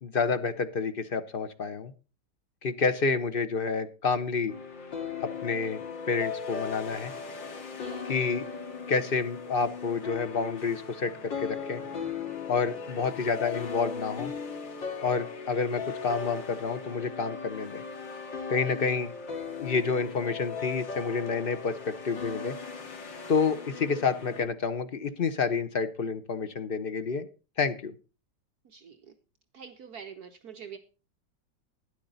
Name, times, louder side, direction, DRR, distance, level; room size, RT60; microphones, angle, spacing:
voice 1, 0.0-1.9 2.6-4.5 5.2-7.1 8.1-8.5 8.9-11.8 12.5-14.3 15.0-17.8 18.5-19.1 19.6-22.5 23.3-27.3 27.6-27.9, left 5 dB, 40° left, 10 dB, 0.8 m, -29 dB
sound 1, 4.5-24.5, left 5 dB, 80° left, 2.9 m, -38 dB
voice 2, 7.7-8.1 15.5-15.7 18.6-19.0 28.6-29.2 29.5-30.8, right 7 dB, 60° right, 7 dB, 1.4 m, -46 dB
12.0 x 10.0 x 3.9 m, 0.33 s
omnidirectional pair, 2.0 m